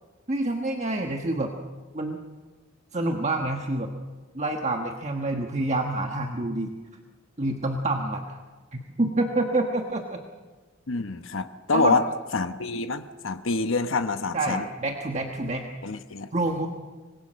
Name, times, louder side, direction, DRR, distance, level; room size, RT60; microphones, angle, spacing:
voice 1, 0.3-1.5 1.9-2.2 2.9-3.9 4.3-6.7 7.4-8.2 8.7-10.2 11.7-12.0 14.3-15.7 16.3-16.7, right 2 dB, 35° right, 3 dB, 1.4 m, -27 dB
voice 2, 10.9-12.0 12.3-14.6 15.8-16.3, left 3 dB, 85° left, 8 dB, 1.1 m, -26 dB
26.0 x 20.5 x 6.4 m, 1.4 s
head